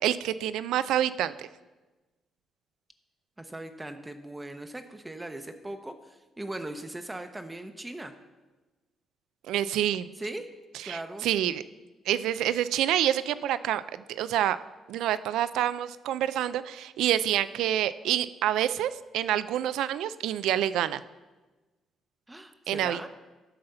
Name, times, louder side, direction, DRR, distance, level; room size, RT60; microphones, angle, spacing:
voice 1, 0.0-1.5 9.5-10.1 10.8-11.6 12.1-13.8 14.1-14.6 14.9-21.0 22.7-23.1, right 11 dB, 85° right, 15 dB, 0.3 m, -27 dB
voice 2, 3.4-8.1 10.2-10.4 10.8-11.3 22.3-23.1, right 1 dB, 15° right, 6 dB, 0.7 m, -39 dB
11.5 x 4.2 x 6.7 m, 1.2 s
cardioid pair, 90°, 0 cm